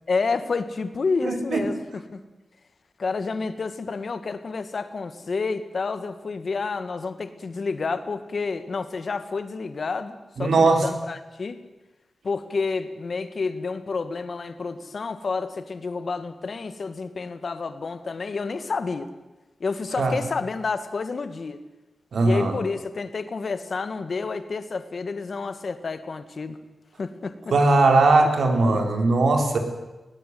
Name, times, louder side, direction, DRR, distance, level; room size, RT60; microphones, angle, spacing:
voice 1, 0.1-2.2 3.0-11.6 12.2-19.1 19.6-21.6 22.2-26.6 27.0-27.5 28.6-28.9, left 4 dB, 50° left, 11 dB, 1.7 m, -29 dB
voice 2, 1.2-1.7 10.4-10.9 20.0-20.2 22.1-22.6 27.5-29.6, right 3 dB, 80° right, 5 dB, 3.8 m, -19 dB
21.0 x 18.0 x 9.3 m, 1.1 s
wide cardioid pair, 160°, 0 cm